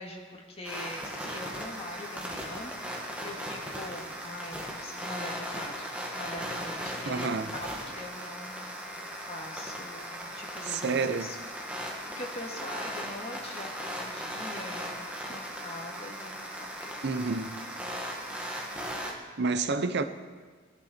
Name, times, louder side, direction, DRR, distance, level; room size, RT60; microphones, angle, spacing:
voice 1, 0.0-11.4 11.7-17.3 17.9-18.8, left 1 dB, 30° left, 2.2 m, -43 dB
sound 1, 0.6-19.1, equal, 5° right, 2.0 m, -38 dB
voice 2, 7.1-7.5 10.7-11.3 17.0-17.5 19.4-20.0, right 4 dB, 55° right, 0.7 m, -29 dB
22.0 x 11.0 x 4.4 m
head